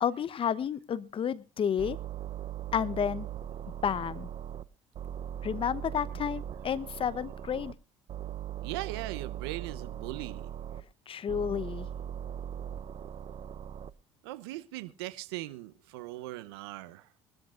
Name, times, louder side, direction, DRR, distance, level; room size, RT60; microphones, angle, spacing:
voice 1, 0.0-2.0 2.7-3.3 3.8-4.3 5.4-7.7 11.1-11.9, left 8 dB, 45° left, 0.9 m, -31 dB
sound 1, 1.8-4.6 4.9-7.7 8.1-10.8 11.3-13.9, right 10 dB, 50° right, 0.8 m, -39 dB
voice 2, 8.6-10.5 14.2-17.0, right 17 dB, 80° right, 0.9 m, -39 dB
22.5 x 13.0 x 2.5 m
hypercardioid pair, 60°, 13 cm